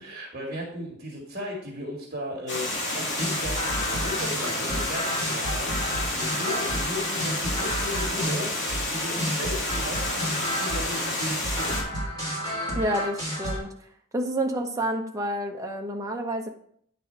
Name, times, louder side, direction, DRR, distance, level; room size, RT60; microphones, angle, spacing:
voice 1, 0.0-11.9, equal, 40° right, -2 dB, 1.7 m, -36 dB
Water, 2.5-11.8, left 2 dB, 55° left, 2.1 m, -30 dB
sound 1, 3.1-13.6, equal, 20° left, 3.4 m, -31 dB
voice 2, 12.7-13.7 14.1-16.5, right 1 dB, 15° right, 2 dB, 0.8 m, -29 dB
9.6 x 4.2 x 4.4 m, 0.66 s
head